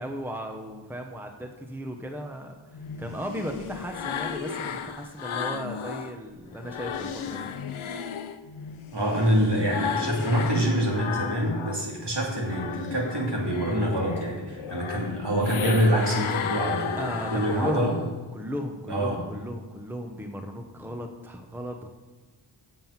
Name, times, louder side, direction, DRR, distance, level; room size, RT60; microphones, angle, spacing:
voice 1, 0.0-7.5 17.0-18.0 18.3-21.9, equal, 5° right, 4 dB, 0.9 m, -36 dB
sound 1, 2.7-6.1 6.5-11.9 12.3-18.1, left 7 dB, 90° left, 0.6 m, -34 dB
voice 2, 8.9-17.9 18.9-19.2, equal, 60° right, -2 dB, 2.6 m, -26 dB
7.6 x 7.5 x 5.7 m, 1.3 s
wide cardioid pair, 40°, 47 cm